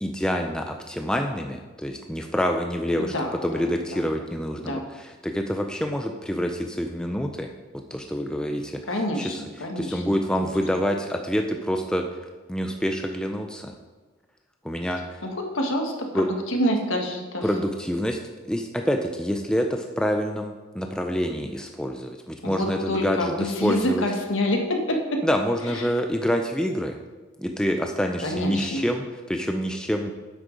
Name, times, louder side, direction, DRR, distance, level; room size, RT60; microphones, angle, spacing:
voice 1, 0.0-3.1 3.4-7.5 7.9-8.8 9.2-9.4 9.8-12.0 12.5-13.7 14.6-15.2 16.1-16.3 17.4-18.2 18.5-24.0 25.2-27.0 27.4-30.1, equal, 5° left, 3 dB, 0.4 m, -27 dB
voice 2, 3.0-3.7 3.9-4.0 4.6-4.8 8.9-10.5 15.2-17.5 22.4-25.2 25.7-25.9 28.2-28.9, left 1 dB, 70° left, 2 dB, 1.4 m, -27 dB
9.9 x 8.3 x 3.9 m, 1.3 s
head